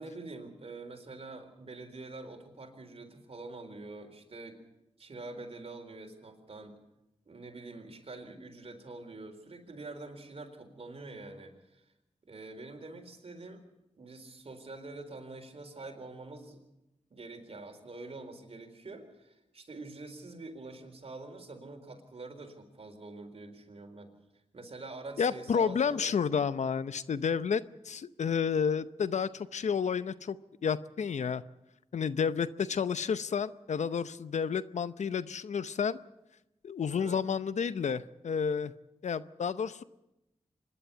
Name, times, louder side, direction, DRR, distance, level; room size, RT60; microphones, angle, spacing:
voice 1, 0.0-4.6 5.0-6.8 7.3-11.8 12.2-13.6 14.0-16.6 17.1-24.1 24.5-26.1 36.9-37.2, right 2 dB, 55° right, 3 dB, 4.1 m, -46 dB
voice 2, 25.2-30.4 30.6-31.4 31.9-36.0 36.6-38.7 39.0-39.8, left 6 dB, 80° left, 15 dB, 0.7 m, -31 dB
25.5 x 11.0 x 9.7 m, 0.91 s
cardioid pair, 60°, 12 cm